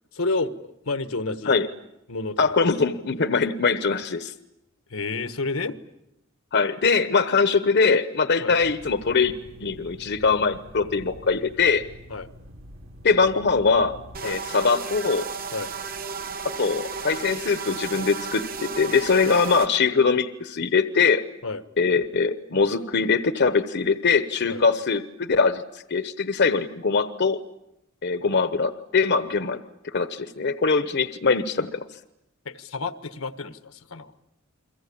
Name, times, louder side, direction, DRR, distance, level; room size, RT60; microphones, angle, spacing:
voice 1, 0.1-1.6 2.1-2.7 4.9-5.8 8.4-8.6 12.1-12.3 14.2-14.4 15.5-15.7 21.4-21.6 24.5-24.6 32.4-34.1, left 3 dB, 85° left, 11 dB, 1.5 m, -30 dB
voice 2, 2.4-4.3 6.5-9.3 9.6-11.8 13.0-14.0 14.2-15.3 16.4-21.2 21.8-27.4 28.0-29.6 29.9-31.8, left 4 dB, 55° left, 11 dB, 1.0 m, -22 dB
sound 1, 8.6-14.2, equal, 90° right, 6.8 m, -46 dB
sound 2, 14.1-19.7, right 5 dB, 45° right, 1.3 m, -34 dB
29.5 x 23.0 x 8.6 m, 0.86 s
head